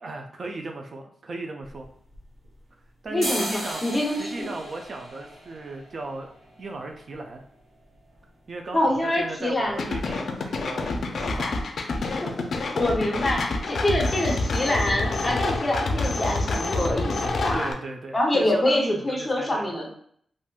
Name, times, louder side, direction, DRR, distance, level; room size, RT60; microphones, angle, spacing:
voice 1, 0.0-1.9 3.0-3.8 4.1-6.3 6.6-7.4 8.5-11.6 17.5-19.7, right 2 dB, 50° right, 3 dB, 0.4 m, -36 dB
sound 1, 1.6-2.7 3.0-10.7 11.1-11.2 11.4-12.0 12.3-12.5 12.8-13.0 13.3-14.0 14.3-14.5 15.0-15.1 15.4-15.5, right 1 dB, 75° right, 1.3 m, -38 dB
voice 2, 3.1-4.5 8.7-9.9 12.2-12.5 12.7-17.2 17.4-17.7 18.1-19.9, left 1 dB, 20° left, -1 dB, 0.7 m, -25 dB
Roland Exceptions, 9.8-17.7, left 3 dB, 65° left, 0.4 m, -27 dB
3.5 x 2.5 x 2.3 m, 0.64 s
wide cardioid pair, 135°, 0 cm